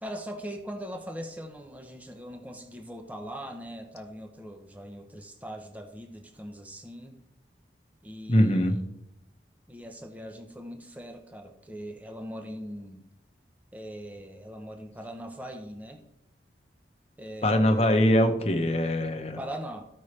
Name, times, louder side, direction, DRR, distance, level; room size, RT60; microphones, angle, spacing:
voice 1, 0.0-7.2 8.0-8.8 9.7-13.0 13.7-16.0 17.2-18.0 19.4-19.8, equal, 10° right, 4 dB, 0.7 m, -41 dB
voice 2, 8.3-8.8 17.4-19.4, equal, 35° left, 6 dB, 0.9 m, -22 dB
14.0 x 5.4 x 3.2 m, 0.82 s
head